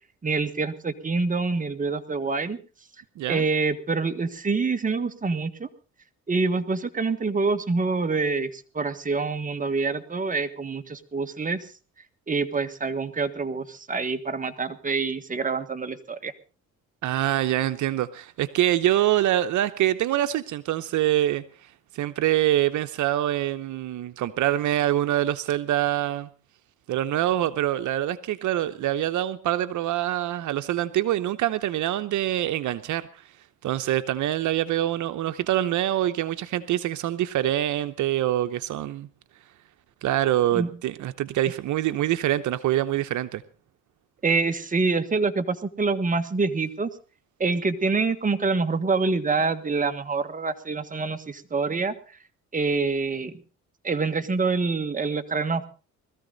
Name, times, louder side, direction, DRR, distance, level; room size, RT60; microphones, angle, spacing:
voice 1, 0.2-2.6 3.3-5.7 6.3-11.7 12.3-16.3 40.5-40.7 44.2-46.9 47.4-51.9 52.5-53.4 53.8-55.7, right 4 dB, 25° right, 1.7 m, -26 dB
voice 2, 17.0-21.4 21.9-26.3 26.9-33.1 33.6-39.1 40.0-43.4, right 13 dB, 75° right, 0.9 m, -25 dB
20.5 x 14.0 x 4.0 m
cardioid pair, 90°, 30 cm